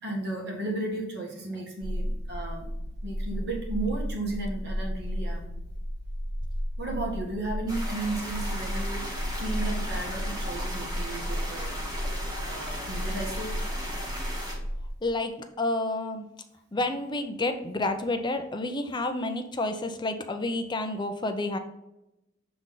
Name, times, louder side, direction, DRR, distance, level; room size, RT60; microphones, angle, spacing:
voice 1, 0.0-2.7 3.0-5.5 6.8-11.8 12.4-13.6, right 2 dB, 60° right, 0 dB, 1.7 m, -34 dB
sound 1, 1.8-14.9, equal, 40° left, 0.9 m, -33 dB
sound 2, 7.7-14.5, equal, 20° right, 1.6 m, -37 dB
voice 2, 15.0-15.3 15.6-16.3 16.7-21.6, left 2 dB, 25° left, 7 dB, 0.6 m, -29 dB
6.9 x 3.7 x 3.9 m, 0.89 s
head